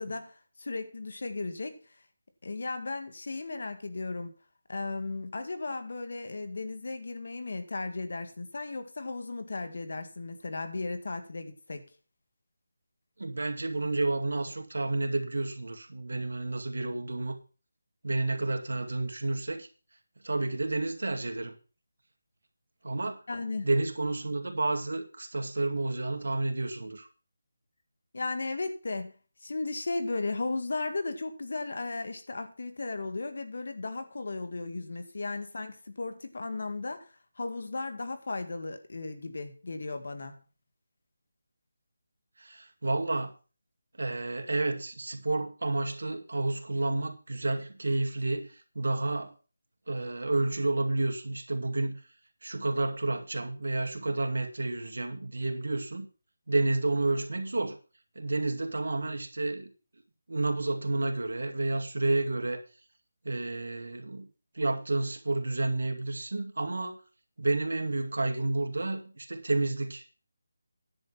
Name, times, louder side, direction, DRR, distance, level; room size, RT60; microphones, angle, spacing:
voice 1, 0.0-1.8 2.4-4.3 4.7-11.9 23.3-23.7 28.1-37.1 37.4-40.4, left 3 dB, 65° left, 1.9 m, -35 dB
voice 2, 13.2-17.4 18.0-19.7 20.2-21.5 22.8-23.2 23.6-27.1 42.4-43.3 44.0-49.3 49.9-52.0 52.4-56.1 56.5-57.8 58.2-59.7 60.3-62.6 63.2-64.3 64.5-67.0 67.4-70.1, right 2 dB, 80° right, 2.2 m, -30 dB
10.5 x 7.9 x 5.7 m
figure-of-eight pair, 170°, 0 cm